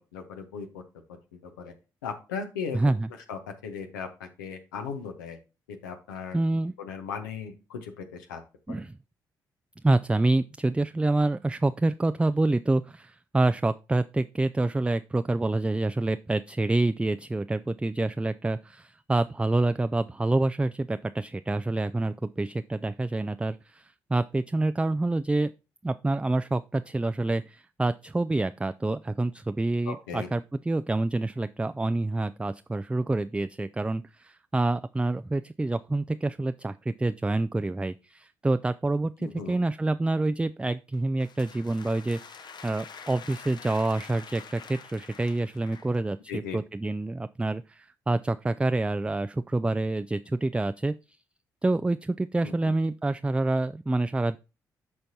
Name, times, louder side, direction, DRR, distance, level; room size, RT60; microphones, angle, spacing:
voice 1, 0.1-0.8 1.3-1.7 2.0-2.8 3.3-5.4 5.7-6.4 6.8-8.4 29.8-30.3 39.2-39.6 46.3-46.6 52.4-52.7, left 6 dB, 80° left, 6 dB, 0.9 m, -37 dB
voice 2, 2.7-3.1 6.3-6.7 8.7-9.0 9.8-25.5 25.8-50.9 51.6-54.4, right 2 dB, 10° right, 12 dB, 0.3 m, -27 dB
sound 1, 40.9-46.0, left 6 dB, 45° left, 0.7 m, -46 dB
12.0 x 4.4 x 2.8 m, 0.31 s
figure-of-eight pair, 40°, 10 cm